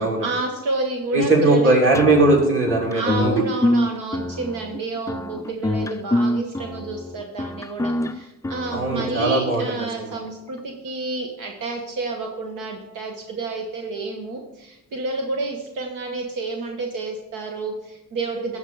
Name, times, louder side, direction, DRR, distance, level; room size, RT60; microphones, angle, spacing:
voice 1, 0.0-1.7 2.9-18.6, right 3 dB, 85° right, 1 dB, 1.1 m, -30 dB
voice 2, 1.1-3.4 8.7-9.6 10.0-10.2, right 2 dB, 40° right, -2 dB, 2.9 m, -19 dB
sound 1, 1.9-9.4, left 1 dB, 10° left, 0.4 m, -26 dB
12.5 x 4.6 x 4.7 m, 0.91 s
cardioid pair, 85°, 31 cm